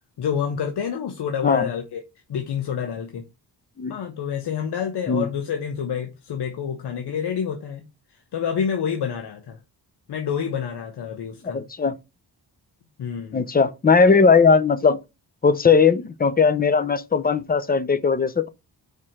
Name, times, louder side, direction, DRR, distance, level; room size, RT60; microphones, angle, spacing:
voice 1, 0.2-2.0 2.3-3.2 3.9-7.8 8.3-9.6 10.1-11.6 13.0-13.4, left 7 dB, 85° left, 1.2 m, -28 dB
voice 2, 11.5-11.9 13.3-15.0 15.4-18.5, left 5 dB, 25° left, 0.6 m, -18 dB
4.9 x 4.8 x 5.7 m
wide cardioid pair, 160°, 39 cm